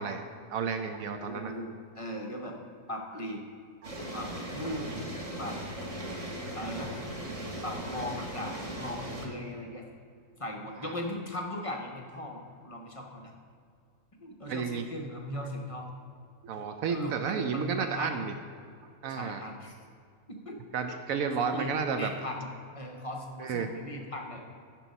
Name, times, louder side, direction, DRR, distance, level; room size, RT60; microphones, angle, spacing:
voice 1, 0.0-1.5 3.8-4.1 10.8-10.9 14.5-14.8 16.4-18.3 19.0-19.4 20.7-22.1 23.4-23.7, right 6 dB, 70° right, 7 dB, 0.9 m, -32 dB
voice 2, 1.2-2.6 2.9-3.4 4.1-5.6 6.6-7.0 7.6-9.8 10.4-13.3 14.2-15.9 16.9-18.2 19.1-19.7 20.3-20.6 20.9-21.0 21.4-22.5 22.7-24.4, left 1 dB, 35° left, 1 dB, 0.5 m, -38 dB
sound 1, 3.8-9.3, right 1 dB, 30° right, 0.9 m, -38 dB
10.0 x 4.6 x 5.3 m, 2.3 s
omnidirectional pair, 1.6 m